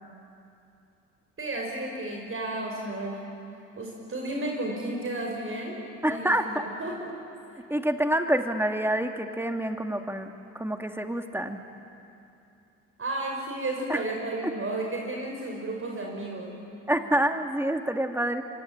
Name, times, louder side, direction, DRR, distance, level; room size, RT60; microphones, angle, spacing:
voice 1, 1.4-3.2 3.8-5.8 6.1-6.3 6.8-7.1 7.5-7.6 13.0-16.6, right 2 dB, 35° right, 0 dB, 5.6 m, -33 dB
voice 2, 6.0-6.7 7.7-11.6 13.9-14.0 16.9-18.4, right 1 dB, 5° right, 5 dB, 2.5 m, -27 dB
25.5 x 24.5 x 9.0 m, 2.7 s
hypercardioid pair, 60°, 38 cm